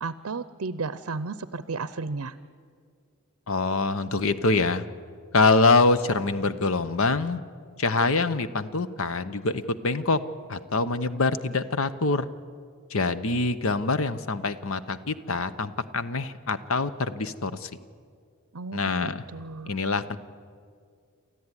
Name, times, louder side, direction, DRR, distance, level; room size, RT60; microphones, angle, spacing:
voice 1, 0.0-2.4 18.5-19.7, right 4 dB, 65° right, 15 dB, 0.6 m, -34 dB
voice 2, 3.5-4.8 5.3-7.4 7.8-10.2 10.5-12.3 12.9-17.7 18.7-19.2 19.7-20.2, left 3 dB, 65° left, 13 dB, 0.9 m, -25 dB
28.0 x 14.0 x 9.8 m, 2.2 s
head